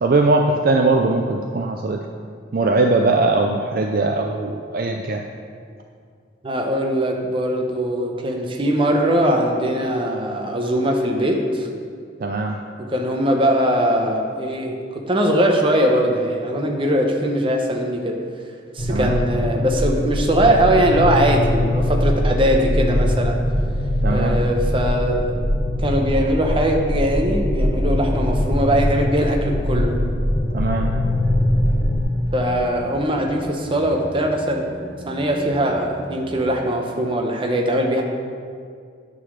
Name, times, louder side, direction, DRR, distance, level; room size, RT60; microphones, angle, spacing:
voice 1, 0.0-2.0 2.5-5.2 12.2-12.6 18.9-19.2 24.0-24.4 30.5-30.9, right 2 dB, 50° right, 3 dB, 0.4 m, -20 dB
voice 2, 6.4-11.7 12.8-18.2 18.7-23.4 24.0-25.3 25.8-30.0 32.3-34.7 35.1-38.0, right 1 dB, 25° right, 2 dB, 0.8 m, -21 dB
sound 1, 18.8-32.0, left 1 dB, 25° left, 0.7 m, -21 dB
sound 2, 30.5-36.5, left 1 dB, 10° right, 2.2 m, -38 dB
9.2 x 3.9 x 6.3 m, 2.2 s
head